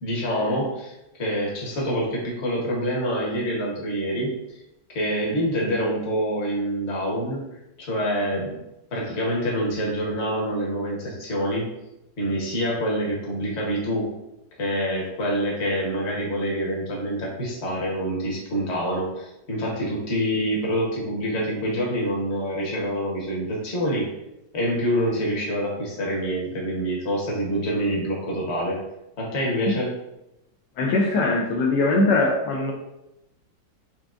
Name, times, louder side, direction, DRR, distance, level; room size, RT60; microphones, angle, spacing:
voice 1, 0.0-0.9 1.2-4.4 4.9-7.4 7.8-8.6 8.9-11.7 12.2-14.1 14.6-24.1 24.5-28.8 29.2-29.9, equal, 45° left, -3 dB, 1.2 m, -26 dB
voice 2, 30.8-32.7, left 2 dB, 80° left, 0 dB, 1.2 m, -21 dB
4.7 x 3.4 x 2.5 m, 0.90 s
omnidirectional pair, 1.9 m